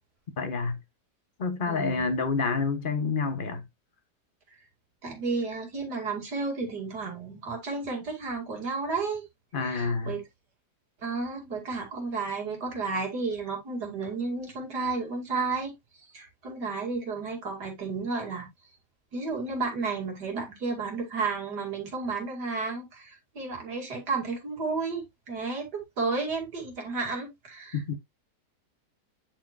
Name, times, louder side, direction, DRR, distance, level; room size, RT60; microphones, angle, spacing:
voice 1, 0.4-0.8 1.4-3.6 9.5-10.2 27.7-27.9, left 4 dB, 45° left, 0.7 m, -28 dB
voice 2, 1.7-2.1 5.0-9.3 9.6-10.2 11.0-15.7 16.1-18.5 19.1-28.0, right 4 dB, 75° right, 3.0 m, -32 dB
10.0 x 4.5 x 2.4 m
omnidirectional pair, 1.8 m